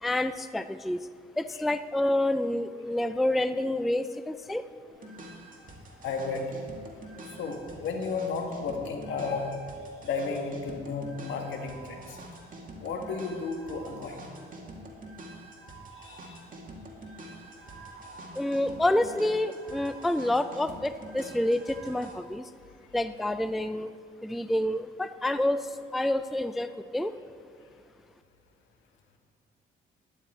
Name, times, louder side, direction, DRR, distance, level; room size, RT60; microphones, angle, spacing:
voice 1, 0.0-1.1 1.4-4.6 18.3-22.5 22.9-23.9 24.2-27.2, left 1 dB, ahead, 11 dB, 0.3 m, -28 dB
sound 1, 4.9-22.1, right 1 dB, 45° right, 2.0 m, -46 dB
voice 2, 6.0-6.5 7.4-9.6 10.0-12.2 12.8-14.2 16.0-16.4, left 4 dB, 75° left, 3 dB, 1.6 m, -33 dB
11.5 x 10.0 x 4.4 m, 2.3 s
cardioid pair, 90°, 20 cm